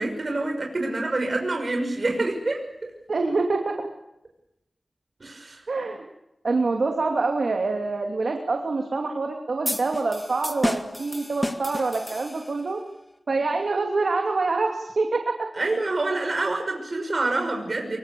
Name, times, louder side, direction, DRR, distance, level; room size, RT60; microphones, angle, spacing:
voice 1, 0.0-2.7 5.2-5.6 15.5-18.0, right 2 dB, 55° right, 3 dB, 6.0 m, -26 dB
voice 2, 3.1-3.8 5.7-6.1 6.4-12.8 13.3-15.3, right 3 dB, 80° right, 3 dB, 2.8 m, -25 dB
sound 1, 9.6-12.7, left 1 dB, 15° left, 1.9 m, -31 dB
25.5 x 24.0 x 7.1 m, 0.86 s
wide cardioid pair, 75°, 0 cm